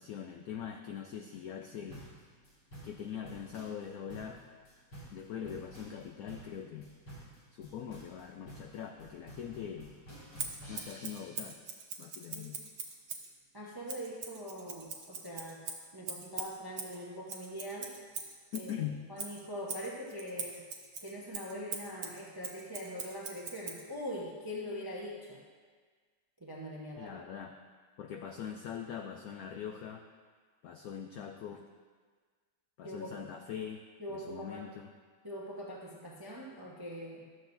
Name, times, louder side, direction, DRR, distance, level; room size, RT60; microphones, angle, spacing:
voice 1, 0.0-2.0 2.8-4.4 5.1-6.9 7.5-9.9 10.7-11.6 12.0-12.6 18.5-19.0 27.0-27.5 28.0-30.0 30.6-31.7 32.8-33.8 34.1-34.9, left 8 dB, 85° left, 3 dB, 0.8 m, -42 dB
sound 1, 1.9-11.4, right 1 dB, 60° left, 2.9 m, -51 dB
Scissors, 10.4-13.3 13.9-18.7 19.2-23.8, right 6 dB, 70° right, 1.5 m, -42 dB
voice 2, 13.5-15.6 15.9-17.9 18.5-18.7 19.1-20.7 21.0-25.4 26.4-27.2 32.8-33.1 34.0-34.6 35.2-37.2, equal, 30° right, -3 dB, 0.4 m, -42 dB
12.5 x 7.4 x 2.6 m, 1.5 s
omnidirectional pair, 2.1 m